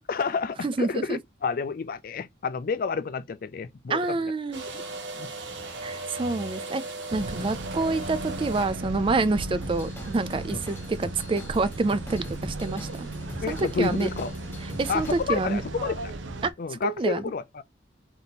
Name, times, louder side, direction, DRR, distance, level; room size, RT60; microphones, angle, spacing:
voice 1, 0.1-4.2 4.7-4.9 5.1-5.3 10.5-10.6 13.4-14.3 14.9-16.1 16.6-17.6, left 5 dB, 50° left, 0.4 m, -30 dB
voice 2, 0.6-1.2 3.9-4.7 5.8-6.8 7.1-13.1 13.5-14.1 14.8-15.6 16.4-16.5 16.8-17.2, right 3 dB, 30° right, 0.3 m, -27 dB
sound 1, 4.5-10.0, right 2 dB, 70° right, 1.0 m, -37 dB
sound 2, 7.1-16.5, right 2 dB, 85° right, 0.7 m, -36 dB
Drum kit / Drum, 9.6-15.2, left 1 dB, 10° left, 1.0 m, -43 dB
3.5 x 2.9 x 4.0 m
head